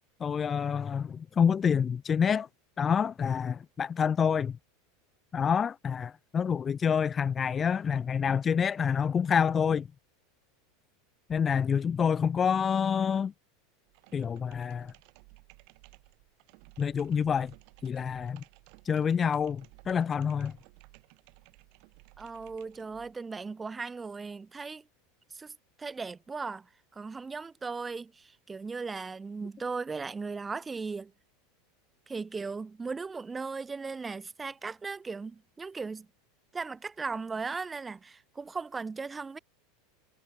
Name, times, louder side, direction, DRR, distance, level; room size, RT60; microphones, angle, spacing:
voice 1, 0.2-2.5 2.8-4.6 5.3-9.9 11.3-13.3 14.1-14.9 16.8-17.5 17.8-18.4 18.9-20.5, left 7 dB, 25° left, 0.3 m, -27 dB
sound 1, 13.9-23.2, right 40 dB or more, 50° right, 8.0 m, -57 dB
voice 2, 22.2-24.9 25.3-31.1 32.1-36.1 36.5-39.4, right 4 dB, 15° right, 1.0 m, -37 dB
figure-of-eight pair, 80°, 0 cm